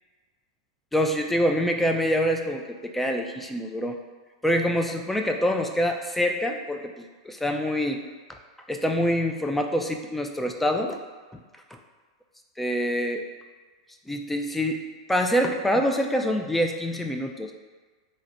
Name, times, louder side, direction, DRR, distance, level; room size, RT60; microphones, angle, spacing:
voice 1, 0.9-4.0 4.4-8.0 8.7-11.0 11.3-11.4 12.6-13.2 14.1-17.5, equal, 5° left, 3 dB, 0.3 m, -25 dB
3.8 x 2.2 x 2.8 m, 1.4 s
hypercardioid pair, 110°, 3 cm